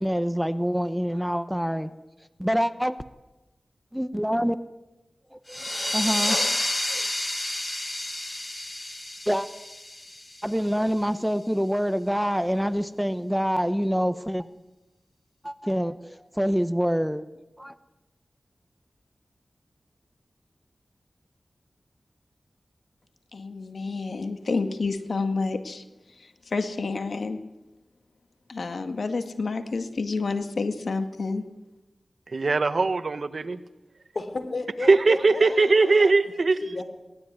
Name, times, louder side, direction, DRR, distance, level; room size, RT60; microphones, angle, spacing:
voice 1, 0.0-1.9 2.4-3.0 3.9-4.6 5.3-5.6 5.9-6.6 6.9-7.1 9.3-9.5 10.4-14.5 15.4-17.3 17.6-17.8, equal, ahead, 12 dB, 0.9 m, -26 dB
sound 1, 5.5-10.8, left 1 dB, 25° left, 1.8 m, -30 dB
voice 2, 23.3-27.4 28.5-31.4, left 3 dB, 75° left, 8 dB, 2.0 m, -29 dB
voice 3, 32.3-33.6 34.8-36.6, right 3 dB, 60° right, 12 dB, 1.4 m, -20 dB
voice 4, 34.1-36.1 36.6-36.8, left 3 dB, 60° left, 9 dB, 3.7 m, -33 dB
22.0 x 19.0 x 9.6 m, 1.0 s
wide cardioid pair, 80°, 0 cm